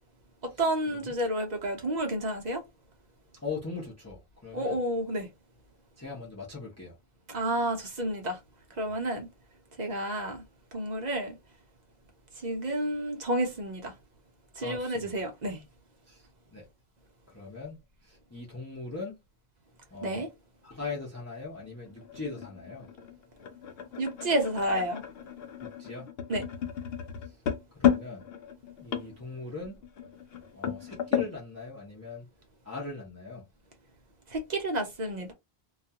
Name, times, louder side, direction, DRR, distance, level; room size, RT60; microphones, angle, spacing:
voice 1, 0.4-2.6 4.5-5.3 7.3-8.4 8.8-9.3 9.8-10.4 10.7-11.4 12.4-13.9 14.6-15.6 20.0-20.3 24.0-25.0 26.3-26.4 34.3-35.3, right 1 dB, 50° right, 0.7 m, -30 dB
voice 2, 3.4-4.8 6.0-7.0 14.6-15.1 16.1-16.7 17.3-19.2 19.9-20.3 20.6-22.9 25.6-26.1 27.2-27.4 27.7-28.3 28.8-29.8 30.5-32.3 32.6-33.5, left 4 dB, 20° left, 0.6 m, -40 dB
sound 1, 21.6-31.4, left 9 dB, 75° left, 0.8 m, -33 dB
2.3 x 2.2 x 2.8 m
omnidirectional pair, 1.0 m